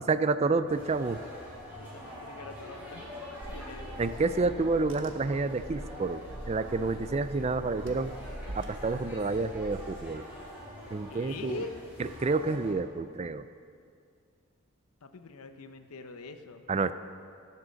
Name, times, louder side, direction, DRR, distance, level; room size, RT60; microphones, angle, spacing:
voice 1, 0.1-1.2 4.0-8.1 8.5-10.2 10.9-11.6 12.0-13.5 16.7-16.9, right 3 dB, 30° right, 12 dB, 0.3 m, -29 dB
sound 1, 0.7-12.7, equal, 10° right, 2.8 m, -45 dB
voice 2, 1.8-3.0 3.5-3.9 11.1-11.7 15.0-16.6, left 4 dB, 85° left, 8 dB, 0.8 m, -43 dB
Car / Engine, 3.4-10.0, equal, 60° right, 1.1 m, -44 dB
13.5 x 7.5 x 6.3 m, 2.3 s
head